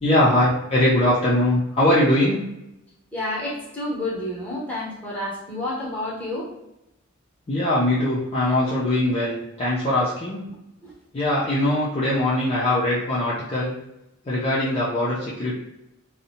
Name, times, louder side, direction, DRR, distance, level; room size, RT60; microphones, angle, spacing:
voice 1, 0.0-2.4 7.5-10.4 11.1-13.8 14.3-15.6, left 1 dB, 30° left, -8 dB, 0.5 m, -21 dB
voice 2, 3.1-6.5 10.8-10.9, left 1 dB, 5° left, -6 dB, 0.9 m, -29 dB
2.6 x 2.0 x 2.8 m, 0.89 s
head